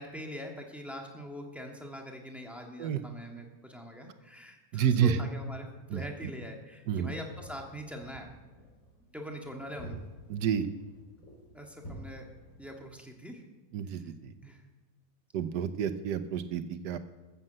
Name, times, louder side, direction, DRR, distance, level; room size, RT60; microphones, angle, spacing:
voice 1, 0.0-8.3 9.1-10.0 11.5-12.2 12.6-13.4 13.9-14.1 14.4-14.6, equal, ahead, 1 dB, 1.6 m, -43 dB
voice 2, 4.7-5.2 5.9-6.3 6.9-7.1 10.3-10.7 13.7-14.3 15.3-17.0, right 8 dB, 80° right, 11 dB, 1.4 m, -29 dB
sound 1, 7.4-13.0, equal, 50° left, 4.0 m, -50 dB
13.0 x 7.5 x 7.6 m, 1.2 s
omnidirectional pair, 1.8 m